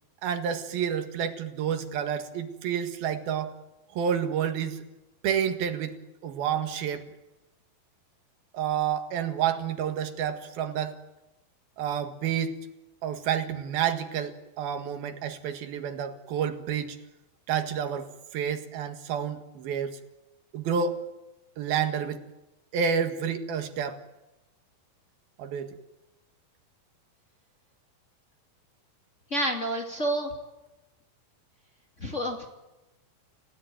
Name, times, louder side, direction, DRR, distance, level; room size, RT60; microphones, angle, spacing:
voice 1, 0.2-3.6 3.9-4.8 5.2-6.0 6.2-7.0 8.5-11.0 11.8-12.6 13.0-17.0 17.5-20.0 20.5-21.0 21.6-22.2 22.7-24.0 25.4-25.8, right 8 dB, 85° right, 7 dB, 3.7 m, -29 dB
voice 2, 29.3-30.3 32.0-32.5, right 1 dB, 20° left, 1 dB, 2.5 m, -29 dB
29.5 x 17.0 x 9.4 m, 1.0 s
omnidirectional pair, 4.2 m